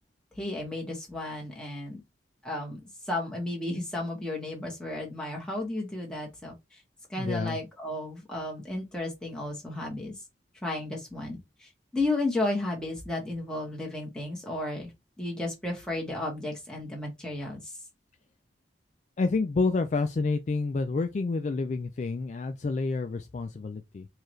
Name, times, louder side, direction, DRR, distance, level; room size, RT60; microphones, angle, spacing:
voice 1, 0.4-2.0 2.4-2.8 3.1-6.8 7.1-10.1 10.6-14.9 15.2-17.7, left 2 dB, 5° left, 1.2 m, -33 dB
voice 2, 7.2-7.6 19.2-24.1, left 3 dB, 40° left, 0.3 m, -29 dB
4.5 x 2.4 x 3.1 m
head